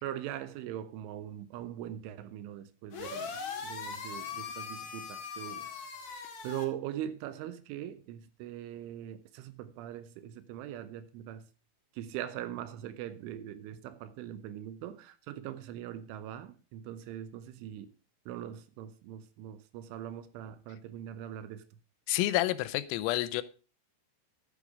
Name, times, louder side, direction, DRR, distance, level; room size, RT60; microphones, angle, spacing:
voice 1, 0.0-5.7 6.1-11.5 11.9-17.9 18.3-21.6, right 11 dB, 80° right, 3.0 m, -41 dB
sound 1, 2.9-6.6, left 6 dB, 45° left, 2.6 m, -40 dB
voice 2, 22.1-23.4, left 16 dB, 85° left, 3.5 m, -29 dB
13.0 x 8.9 x 4.9 m
omnidirectional pair, 6.0 m